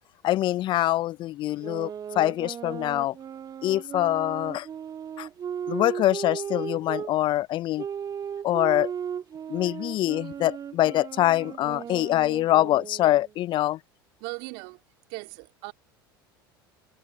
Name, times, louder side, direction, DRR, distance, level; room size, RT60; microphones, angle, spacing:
voice 1, 0.2-1.9 2.2-3.1 3.6-4.7 5.2-5.3 5.7-7.8 8.4-8.9 9.5-13.8, left 14 dB, 45° left, 0.6 m, -24 dB
sound 1, 1.6-7.1 7.8-13.3, right 8 dB, 35° right, 3.1 m, -36 dB
voice 2, 14.2-14.8 15.1-15.7, right 30 dB, 60° right, 2.5 m, -39 dB
open air
hypercardioid pair, 75°, 12 cm